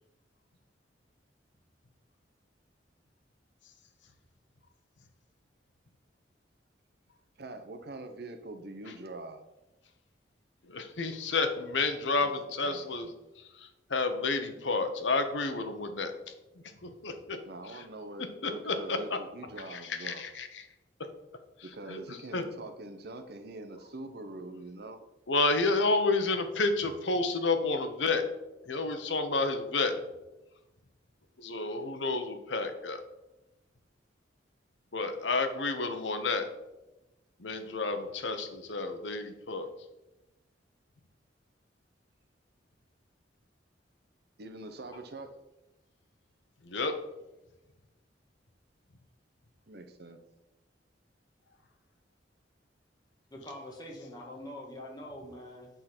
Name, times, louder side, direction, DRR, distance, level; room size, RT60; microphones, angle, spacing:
voice 1, 7.4-9.4 12.2-12.3 12.6-13.1 17.4-20.2 21.6-25.0 44.4-45.3 49.7-50.2, right 2 dB, 60° right, 8 dB, 0.8 m, -44 dB
voice 2, 10.7-13.1 13.6-16.1 16.8-17.1 17.7-17.8 18.4-19.0 19.7-20.6 21.9-22.0 22.3-22.4 25.3-28.2 28.7-29.9 31.4-33.0 34.9-36.5 37.4-39.7 46.6-46.9, left 3 dB, 80° left, 7 dB, 0.9 m, -30 dB
voice 3, 53.3-55.7, left 1 dB, 20° left, -1 dB, 1.6 m, -44 dB
8.9 x 3.9 x 6.0 m, 1.0 s
head